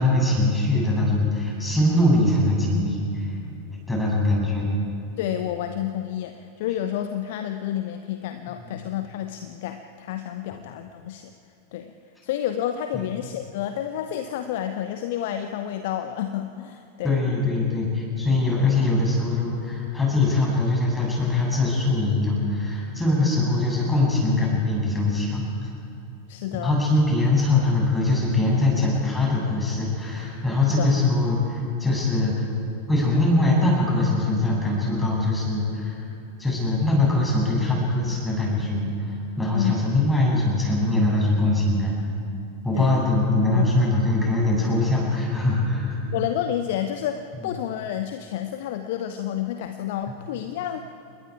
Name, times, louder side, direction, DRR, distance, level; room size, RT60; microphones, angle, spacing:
voice 1, 0.0-3.3 3.9-4.7 8.6-8.7 17.0-25.5 26.5-32.4 32.9-36.0 36.4-41.9 42.6-46.0 47.4-47.5, left 2 dB, 5° left, -4 dB, 7.3 m, -22 dB
voice 2, 5.2-11.3 11.7-11.9 12.2-17.2 26.3-26.7 30.8-30.9 39.5-39.8 42.7-43.0 43.5-43.7 46.1-50.8, left 11 dB, 50° left, 8 dB, 0.9 m, -30 dB
28.0 x 21.0 x 4.8 m, 2.7 s
figure-of-eight pair, 90°, 0 cm